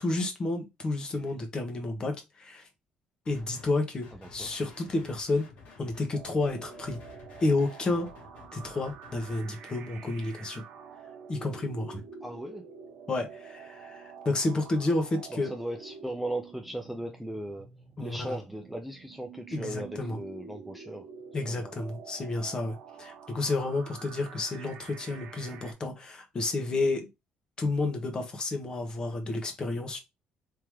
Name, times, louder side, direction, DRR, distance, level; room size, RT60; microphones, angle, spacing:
voice 1, 0.0-2.7 3.3-5.5 5.8-7.0 7.4-8.1 8.5-10.6 11.3-12.0 13.1-15.5 18.0-18.3 19.5-20.2 21.3-27.1 27.6-30.0, left 2 dB, 30° left, 1.2 m, -31 dB
sound 1, 3.2-3.7 4.0-9.4, left 3 dB, 65° left, 2.1 m, -51 dB
sound 2, 6.1-25.7, right 6 dB, 85° right, 0.9 m, -48 dB
voice 2, 12.2-12.7 15.3-17.7 18.0-21.7, right 1 dB, 5° right, 0.6 m, -37 dB
3.7 x 2.9 x 3.1 m
cardioid pair, 115°, 3 cm